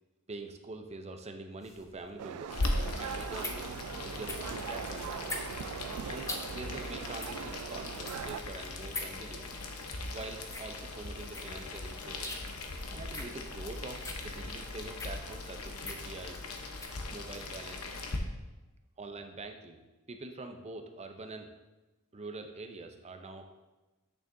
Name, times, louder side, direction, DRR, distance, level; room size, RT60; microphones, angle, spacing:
voice 1, 0.3-2.6 2.9-3.7 4.0-5.4 6.1-9.5 10.1-12.3 12.9-16.4 17.1-18.0 19.0-19.8 20.1-21.5 22.1-23.6, right 3 dB, 30° right, 5 dB, 0.6 m, -44 dB
sound 1, 1.6-17.0, left 2 dB, 15° left, 0.7 m, -44 dB
sound 2, 2.2-8.4, right 7 dB, 80° right, 0.3 m, -41 dB
Boiling, 2.5-18.2, left 2 dB, 90° left, 0.9 m, -39 dB
8.8 x 6.9 x 2.7 m, 1.1 s
head